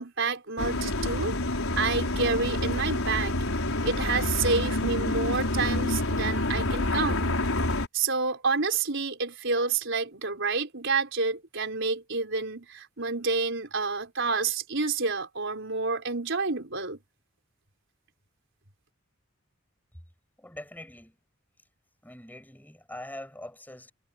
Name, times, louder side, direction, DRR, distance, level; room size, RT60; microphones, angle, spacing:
voice 1, 0.0-1.4 1.8-3.3 3.8-7.4 7.9-17.0, right 4 dB, 60° right, 5.0 m, -29 dB
sound 1, 0.6-7.9, left 2 dB, 80° left, 4.8 m, -28 dB
voice 2, 20.4-21.2 22.0-23.9, left 1 dB, 10° left, 7.4 m, -43 dB
head